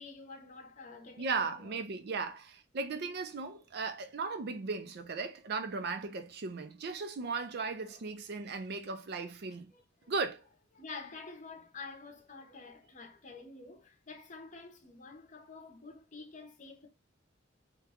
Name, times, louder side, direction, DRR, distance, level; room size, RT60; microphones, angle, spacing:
voice 1, 0.0-1.8 7.9-8.0 9.7-10.1 10.7-16.9, left 4 dB, 40° left, 0.7 m, -49 dB
voice 2, 1.2-9.7 10.1-10.4, right 4 dB, 55° right, 0.4 m, -37 dB
2.9 x 2.2 x 3.5 m
head